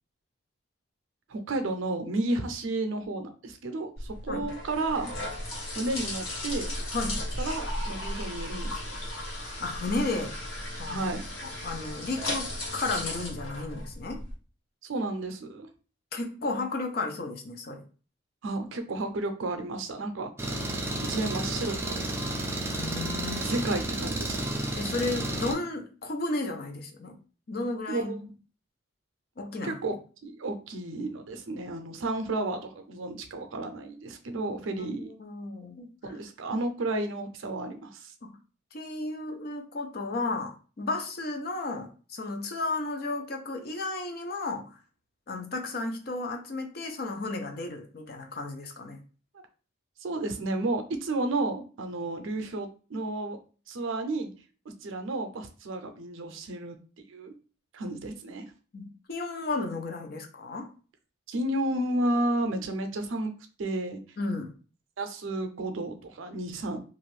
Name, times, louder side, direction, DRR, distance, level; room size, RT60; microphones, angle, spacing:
voice 1, 1.3-5.1 5.7-6.7 7.4-8.9 10.9-11.2 14.8-15.7 18.4-20.3 21.1-22.0 22.5-22.6 23.4-24.4 27.9-28.2 29.6-29.9 30.2-35.1 36.0-38.1 50.0-53.4 53.7-54.3 54.8-56.8 57.1-57.3 57.7-58.4 61.3-63.3 63.6-64.0 65.0-66.8, right 2 dB, 75° right, 7 dB, 0.5 m, -32 dB
sound 1, 4.0-14.3, left 1 dB, 80° left, 1.0 m, -35 dB
voice 2, 9.6-10.3 10.8-11.0 11.4-14.2 16.1-17.8 22.7-23.7 24.8-27.2 27.5-28.3 29.4-29.8 34.9-35.9 38.2-38.3 38.7-44.7 45.3-49.0 58.7-60.7 64.2-64.5, left 2 dB, 50° left, 4 dB, 0.5 m, -33 dB
Engine, 20.4-25.5, right 1 dB, 10° right, 0.3 m, -32 dB
2.6 x 2.4 x 3.1 m, 0.37 s
head